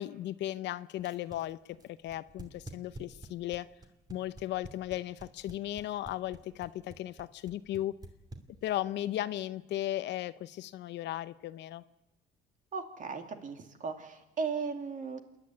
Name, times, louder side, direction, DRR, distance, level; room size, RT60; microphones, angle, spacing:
voice 1, 0.0-3.7 4.1-7.9 8.6-11.8, left 13 dB, 70° left, 16 dB, 0.7 m, -36 dB
sound 1, 1.0-8.9, right 2 dB, 20° right, 2.6 m, -48 dB
voice 2, 12.7-15.2, right 5 dB, 45° right, 6 dB, 2.5 m, -36 dB
27.5 x 11.0 x 9.7 m, 1.0 s
cardioid pair, 100°, 19 cm